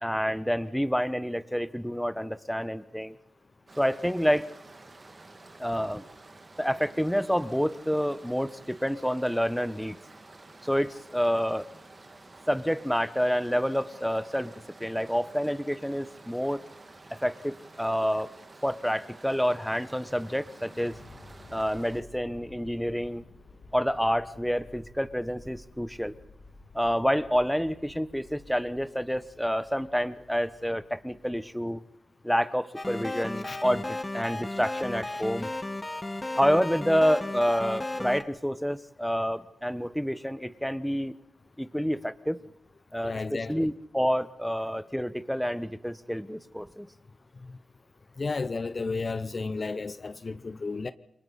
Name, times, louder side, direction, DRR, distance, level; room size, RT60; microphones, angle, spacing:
voice 1, 0.0-3.1 3.8-4.5 5.6-6.1 6.6-10.0 10.6-11.7 12.5-14.5 14.8-16.6 17.1-18.3 18.6-21.0 21.5-23.2 23.7-26.1 26.7-31.8 32.2-35.5 36.4-41.1 41.6-42.4 42.9-46.9, equal, ahead, 1.2 m, -28 dB
sound 1, 3.7-22.0, right 2 dB, 40° right, 2.2 m, -51 dB
sound 2, 20.5-31.6, left 3 dB, 85° left, 3.4 m, -53 dB
sound 3, 32.8-38.2, left 2 dB, 25° left, 1.5 m, -34 dB
voice 2, 35.1-35.5 43.0-43.7 47.4-47.6 48.2-50.9, left 4 dB, 45° left, 0.8 m, -33 dB
28.5 x 22.5 x 4.2 m
cardioid pair, 55°, 0 cm